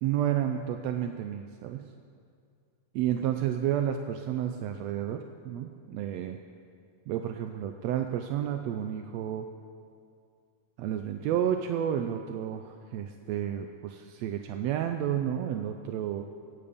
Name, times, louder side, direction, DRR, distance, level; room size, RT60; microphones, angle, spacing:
voice 1, 0.0-1.9 2.9-6.4 7.1-9.5 10.8-16.2, right 10 dB, 80° right, 6 dB, 1.6 m, -31 dB
24.5 x 9.1 x 5.2 m, 2.3 s
omnidirectional pair, 3.6 m